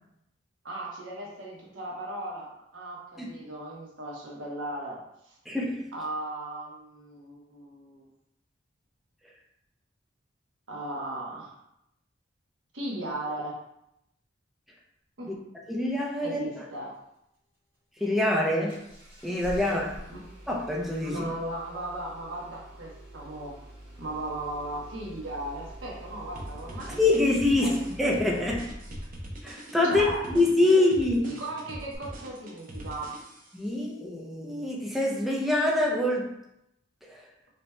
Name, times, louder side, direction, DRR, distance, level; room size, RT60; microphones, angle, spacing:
voice 1, 0.6-5.3 5.9-8.1 10.7-11.6 12.7-13.6 15.2-15.4 16.2-16.9 19.6-19.8 20.1-20.2 21.0-23.6 24.0-27.0 27.6-27.8 29.8-30.2 30.7-30.9 31.1-33.1, right 1 dB, 85° right, -3 dB, 1.0 m, -37 dB
voice 2, 5.5-5.9 15.7-16.6 18.0-18.8 19.2-19.9 20.5-21.2 27.0-28.7 29.4-30.1 30.3-31.2 33.5-36.3 37.1-37.2, left 2 dB, ahead, -3 dB, 0.6 m, -25 dB
Engine starting, 18.7-29.3 31.9-32.0, right 1 dB, 30° right, 1.4 m, -46 dB
sound 1, 26.4-33.7, equal, 45° right, 0.7 m, -42 dB
5.1 x 2.9 x 2.2 m, 0.81 s
head